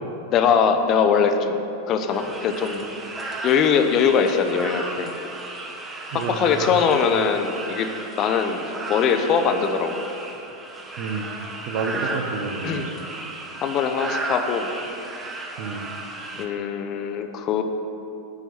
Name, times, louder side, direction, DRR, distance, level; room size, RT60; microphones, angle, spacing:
voice 1, 0.3-1.6 1.9-2.8 3.4-5.1 6.1-7.9 8.2-8.6 8.9-10.0 12.1-12.2 12.6-12.9 13.6-14.7 16.4-17.6, left 6 dB, 35° left, 7 dB, 0.6 m, -21 dB
sound 1, 2.1-16.5, right 2 dB, 15° right, 0.9 m, -34 dB
voice 2, 6.1-6.8 11.0-11.3 11.7-13.0 15.6-15.9, right 5 dB, 50° right, 6 dB, 0.7 m, -29 dB
9.5 x 4.6 x 6.0 m, 2.9 s
figure-of-eight pair, 90°, 0 cm